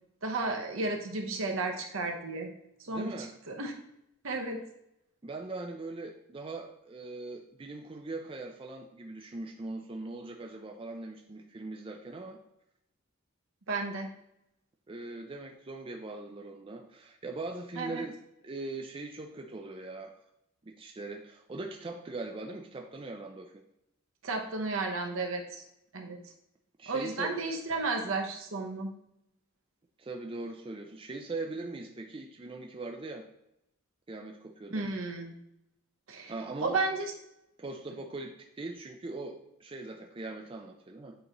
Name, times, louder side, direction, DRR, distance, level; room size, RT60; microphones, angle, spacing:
voice 1, 0.2-2.5 2.8-3.1 3.5-3.7 4.2-4.6 13.7-14.1 17.8-18.0 24.2-25.6 25.9-26.2 26.9-28.9 34.7-35.3 36.1-36.3 36.6-37.1, right 3 dB, 70° right, 3 dB, 0.9 m, -33 dB
voice 2, 2.9-3.3 5.2-12.4 14.9-18.2 18.4-20.1 20.6-23.6 26.8-27.4 30.0-33.3 34.1-34.8 36.3-36.8 37.6-41.1, right 2 dB, 25° right, 2 dB, 0.4 m, -40 dB
8.6 x 4.0 x 3.0 m, 0.82 s
head